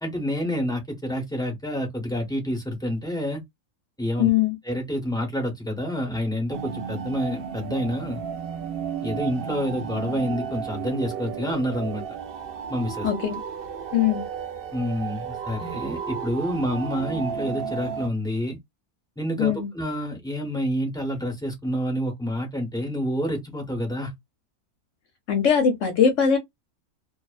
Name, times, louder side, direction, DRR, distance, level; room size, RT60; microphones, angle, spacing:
voice 1, 0.0-3.4 4.0-4.3 4.6-8.2 9.0-12.0 12.7-13.1 14.7-18.6 19.2-24.1, equal, 5° left, 0.6 m, -28 dB
voice 2, 4.2-4.5 13.0-13.4 13.9-14.2 19.4-19.7 25.3-26.4, left 8 dB, 60° left, 1.0 m, -21 dB
sound 1, 6.5-18.1, right 7 dB, 55° right, 0.6 m, -33 dB
2.6 x 2.1 x 2.2 m
omnidirectional pair, 1.6 m